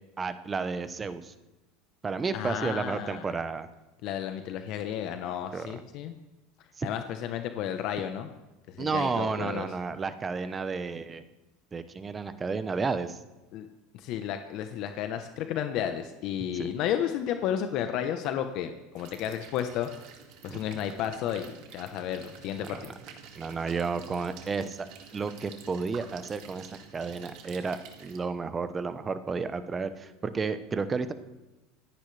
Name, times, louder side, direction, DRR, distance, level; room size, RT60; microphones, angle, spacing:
voice 1, 0.2-1.3 2.0-3.7 5.5-5.7 6.8-6.9 8.8-11.2 11.7-13.2 16.5-16.7 20.5-20.6 23.4-26.7 26.9-31.1, right 4 dB, 20° right, 11 dB, 0.9 m, -32 dB
voice 2, 2.3-3.4 4.0-6.1 6.8-8.3 8.7-9.7 13.5-13.7 13.9-19.9 20.4-22.9, left 10 dB, 55° left, 7 dB, 1.0 m, -32 dB
sound 1, 19.0-28.2, right 7 dB, 60° right, 2.2 m, -50 dB
25.0 x 10.5 x 3.4 m, 1.0 s
supercardioid pair, 115°, 0 cm